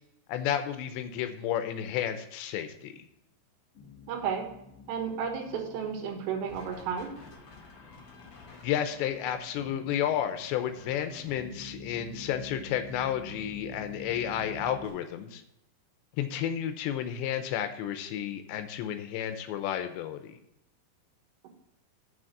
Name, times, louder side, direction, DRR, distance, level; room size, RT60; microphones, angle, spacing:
voice 1, 0.3-3.1 8.6-15.4 16.2-20.4, left 10 dB, 85° left, 8 dB, 3.0 m, -32 dB
sound 1, 3.7-14.9, left 2 dB, 55° left, 1.6 m, -47 dB
voice 2, 4.1-4.5 4.9-7.1, right 7 dB, 75° right, 1 dB, 3.6 m, -32 dB
7.2 x 6.3 x 5.6 m, 0.83 s
omnidirectional pair, 5.2 m